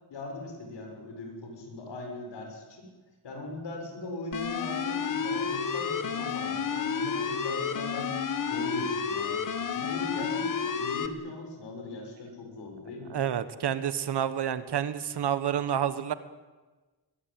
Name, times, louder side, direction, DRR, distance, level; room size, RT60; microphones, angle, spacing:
voice 1, 0.1-2.9 3.2-8.1 8.5-9.4 9.7-13.2, left 2 dB, 75° left, 3 dB, 6.8 m, -39 dB
sound 1, 4.3-11.1, left 6 dB, 45° left, 1.4 m, -31 dB
voice 2, 13.1-16.1, right 9 dB, 65° right, 13 dB, 1.4 m, -29 dB
21.5 x 21.5 x 9.0 m, 1.3 s
wide cardioid pair, 140°, 43 cm